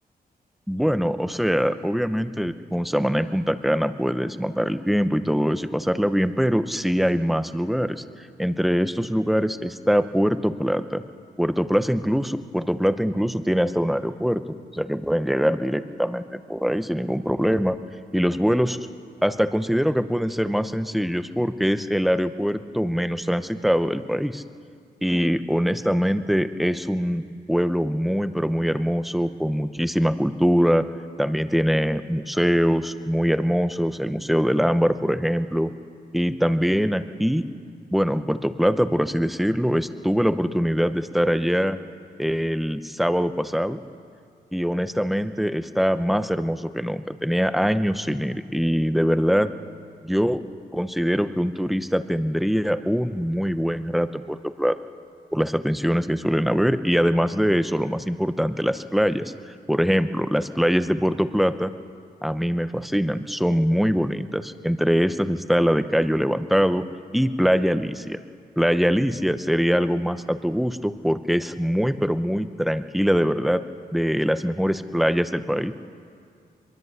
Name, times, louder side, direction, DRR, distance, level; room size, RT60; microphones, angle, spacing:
voice 1, 0.7-11.0 11.4-14.4 14.7-17.8 18.1-18.8 19.2-24.4 25.0-30.8 31.2-35.7 36.1-37.4 37.9-41.8 42.2-43.8 44.5-49.5 50.0-50.4 50.7-54.8 55.3-61.7 62.2-66.8 67.1-68.2 68.6-73.6 73.9-75.7, equal, ahead, 10 dB, 0.7 m, -23 dB
23.5 x 22.0 x 8.1 m, 2.3 s
wide cardioid pair, 145°, 16 cm